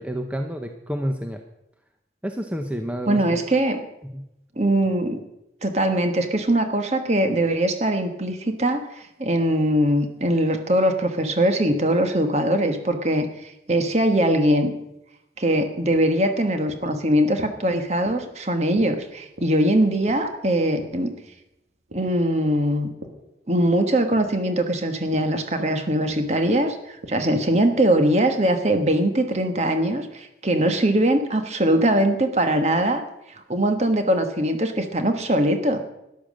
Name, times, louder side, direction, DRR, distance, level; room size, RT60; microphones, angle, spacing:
voice 1, 0.0-1.4 2.2-3.4 4.0-4.3 30.6-30.7, equal, 5° right, 4 dB, 0.8 m, -29 dB
voice 2, 3.1-3.8 4.6-5.2 5.6-14.7 15.4-21.1 21.9-22.9 23.5-33.0 33.5-35.8, right 1 dB, 40° right, 6 dB, 1.4 m, -21 dB
sound 1, 15.4-23.3 23.6-27.4, right 1 dB, 80° right, 2.4 m, -44 dB
13.0 x 10.5 x 6.4 m, 0.85 s
head